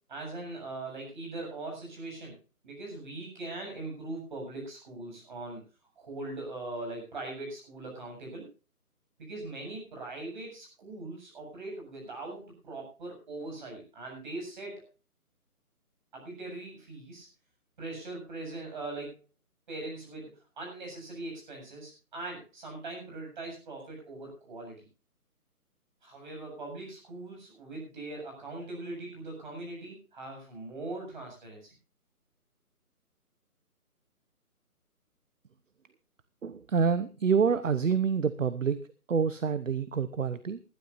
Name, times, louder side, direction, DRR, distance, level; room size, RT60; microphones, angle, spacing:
voice 1, 0.1-2.3 2.6-5.6 6.0-8.5 9.2-14.8 16.1-17.3 17.8-19.2 19.7-24.8 26.0-31.7, right 2 dB, 30° right, 1 dB, 7.5 m, -41 dB
voice 2, 36.4-38.8 39.1-40.6, right 6 dB, 55° right, 14 dB, 1.0 m, -27 dB
20.0 x 13.0 x 2.6 m, 0.33 s
hypercardioid pair, 170°, 45 cm